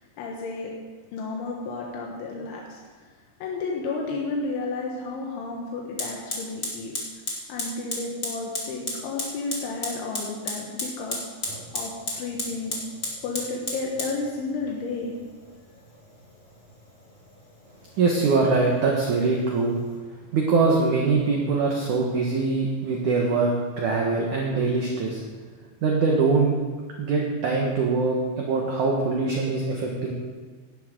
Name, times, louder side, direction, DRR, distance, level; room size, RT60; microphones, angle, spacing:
voice 1, 0.2-0.7 1.1-2.8 3.4-6.9 7.5-11.2 11.7-12.8 13.2-15.1, left 3 dB, 85° left, -1 dB, 3.7 m, -32 dB
Fire, 5.0-5.1 6.0-20.0, left 1 dB, 25° left, 1.3 m, -36 dB
voice 2, 18.0-19.8 20.3-25.2 25.8-26.5 27.0-30.1, right 4 dB, 65° right, -1 dB, 2.1 m, -23 dB
17.5 x 11.5 x 3.8 m, 1.5 s
omnidirectional pair, 5.2 m